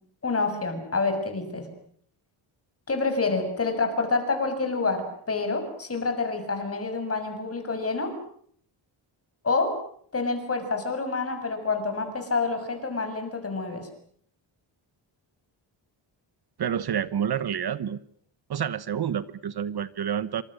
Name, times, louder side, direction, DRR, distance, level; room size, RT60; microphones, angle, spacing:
voice 1, 0.2-1.7 2.9-8.1 9.4-9.7 10.1-13.9, left 3 dB, 30° left, 6 dB, 6.7 m, -27 dB
voice 2, 16.6-18.0 18.5-20.4, right 8 dB, 55° right, 15 dB, 1.1 m, -28 dB
28.0 x 26.0 x 6.5 m, 0.62 s
wide cardioid pair, 155°, 46 cm